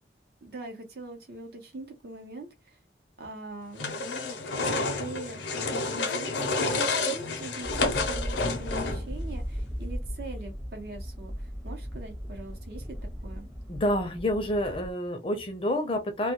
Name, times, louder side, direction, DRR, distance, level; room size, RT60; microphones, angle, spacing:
voice 1, 0.4-2.8 3.2-3.9 4.5-13.0 13.2-13.5, right 2 dB, 60° right, 0.7 m, -42 dB
sound 1, 3.8-9.2, left 3 dB, 80° left, 0.5 m, -29 dB
sound 2, 7.6-14.9, equal, 10° right, 0.7 m, -37 dB
voice 2, 13.7-16.3, left 1 dB, 30° left, 0.5 m, -28 dB
2.2 x 2.2 x 2.8 m
head